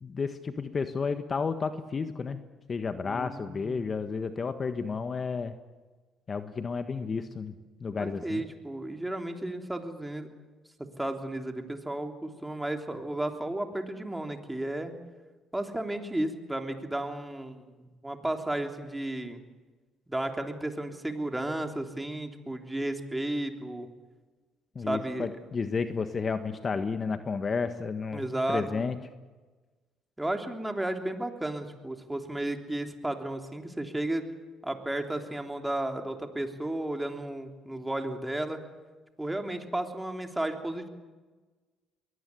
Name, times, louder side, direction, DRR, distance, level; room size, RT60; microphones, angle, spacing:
voice 1, 0.0-2.4 2.7-5.6 6.3-7.5 7.8-8.4 24.7-29.0, left 5 dB, 40° left, 9 dB, 1.5 m, -32 dB
voice 2, 3.0-3.8 8.0-10.3 11.0-14.9 15.5-19.4 20.1-23.9 24.9-25.3 28.1-28.8 30.2-34.2 34.6-38.6 39.2-40.9, right 1 dB, 10° right, 5 dB, 3.3 m, -33 dB
22.5 x 18.0 x 9.8 m, 1.3 s
supercardioid pair, 70°, 0 cm